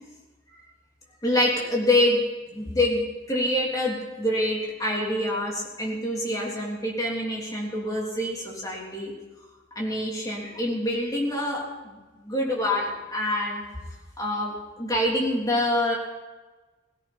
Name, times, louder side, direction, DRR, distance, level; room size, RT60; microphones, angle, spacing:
voice 1, 1.2-2.2 2.5-9.1 9.7-13.6 14.2-16.0, left 1 dB, 20° left, -3 dB, 3.4 m, -26 dB
17.5 x 16.5 x 4.3 m, 1.2 s
head